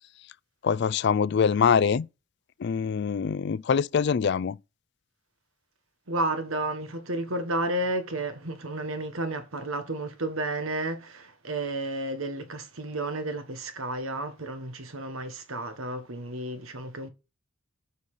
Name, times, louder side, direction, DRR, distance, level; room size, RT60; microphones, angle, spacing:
voice 1, 0.6-2.1 2.6-4.6, left 6 dB, 55° left, 0.3 m, -24 dB
voice 2, 6.1-17.1, right 2 dB, 75° right, 1.4 m, -32 dB
6.4 x 5.4 x 4.8 m
head